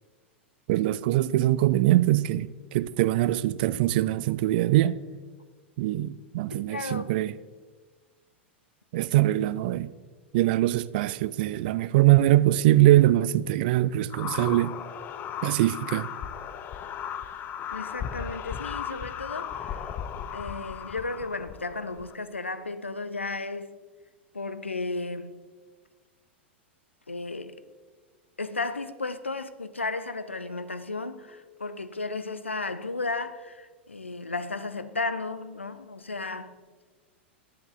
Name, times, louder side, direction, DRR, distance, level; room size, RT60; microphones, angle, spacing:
voice 1, 0.7-5.0 5.8-7.3 8.9-9.9 10.3-14.7 15.4-16.1, right 15 dB, 50° right, 0.4 m, -22 dB
voice 2, 6.5-7.1 17.7-19.9 20.3-23.7 24.3-25.3 27.1-27.6 28.4-36.5, left 3 dB, 90° left, 0.6 m, -34 dB
sound 1, 14.1-22.1, left 8 dB, 30° left, 0.7 m, -36 dB
11.0 x 9.6 x 3.9 m
figure-of-eight pair, 95°, 6 cm